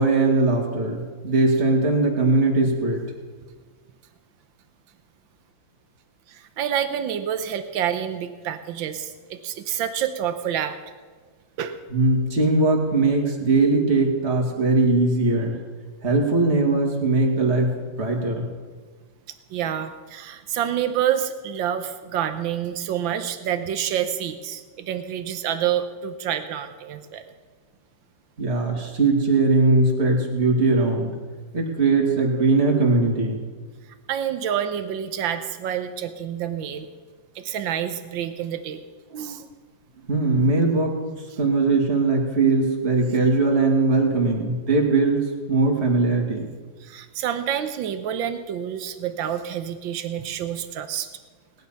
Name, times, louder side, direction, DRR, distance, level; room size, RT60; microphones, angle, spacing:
voice 1, 0.0-3.0 11.9-15.6 16.0-17.7 18.0-18.5 28.4-31.1 31.5-33.4 40.1-40.9 41.4-45.2 45.5-46.5, right 3 dB, 35° right, 0 dB, 2.6 m, -20 dB
voice 2, 6.3-10.8 11.6-11.8 19.5-27.2 34.1-36.9 37.3-38.8 39.1-39.5 46.8-51.1, right 9 dB, 90° right, 9 dB, 1.6 m, -28 dB
19.0 x 10.5 x 5.8 m, 1.5 s
omnidirectional pair, 2.0 m